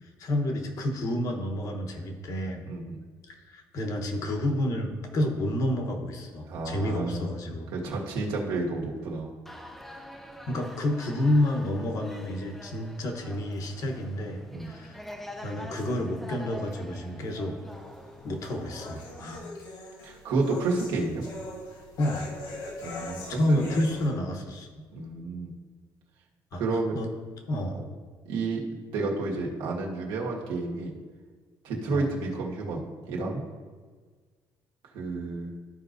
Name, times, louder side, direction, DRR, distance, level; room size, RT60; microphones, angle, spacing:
voice 1, 0.0-2.6 3.3-7.7 10.5-15.0 15.4-17.6 18.2-19.4 22.0-22.3 23.3-24.7 26.5-26.6 26.9-27.1 27.5-27.8 31.9-32.0, left 1 dB, 45° left, 3 dB, 1.1 m, -29 dB
voice 2, 2.7-3.0 6.5-7.3 7.7-9.3 14.5-14.7 19.2-19.5 20.0-21.2 22.8-24.0 24.9-25.5 26.6-27.0 28.2-28.6 28.9-30.9 31.6-33.4 34.9-35.5, right 3 dB, 90° right, -2 dB, 1.7 m, -31 dB
sound 1, 9.5-19.5, equal, 5° left, 0.5 m, -45 dB
sound 2, 17.7-24.1, left 2 dB, 75° left, 2.3 m, -42 dB
13.5 x 5.2 x 2.6 m, 1.5 s
cardioid pair, 175°, 8 cm